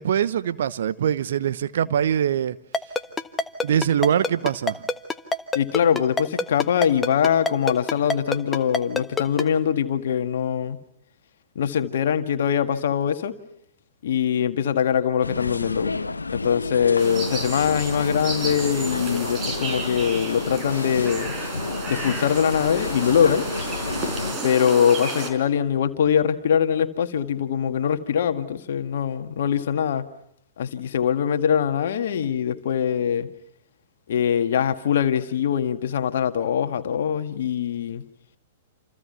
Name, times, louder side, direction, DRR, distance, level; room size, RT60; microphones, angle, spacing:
voice 1, 0.0-2.6 3.6-4.8, right 9 dB, 60° right, 1.0 m, -23 dB
Ringtone, 2.7-9.4, left 3 dB, 10° left, 1.3 m, -24 dB
voice 2, 5.6-10.8 11.6-13.3 14.0-15.9 16.3-21.4 21.9-23.4 24.4-30.1 30.6-33.3 34.1-38.0, left 8 dB, 55° left, 1.8 m, -22 dB
sound 1, 15.2-24.3, left 3 dB, 80° left, 1.0 m, -31 dB
sound 2, 17.0-25.3, right 2 dB, 25° right, 5.3 m, -32 dB
28.5 x 28.5 x 5.7 m
figure-of-eight pair, 105°, 0 cm